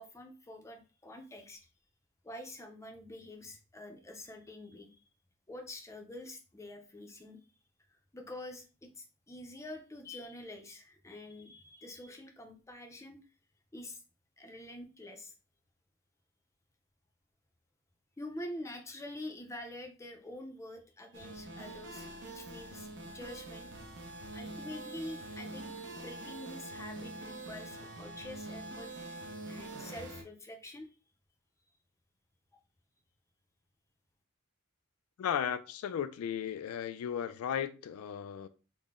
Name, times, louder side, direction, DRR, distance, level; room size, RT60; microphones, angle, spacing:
voice 1, 0.0-1.7 2.2-5.0 5.5-7.4 8.1-13.2 13.7-14.0 14.4-15.3 18.2-23.7 24.3-28.9 29.4-30.9 32.5-32.6, left 1 dB, 15° left, 0.5 m, -46 dB
sound 1, 21.1-30.2, right 2 dB, 55° right, 0.7 m, -45 dB
voice 2, 35.2-38.5, left 8 dB, 80° left, 0.3 m, -35 dB
3.7 x 2.0 x 3.6 m
head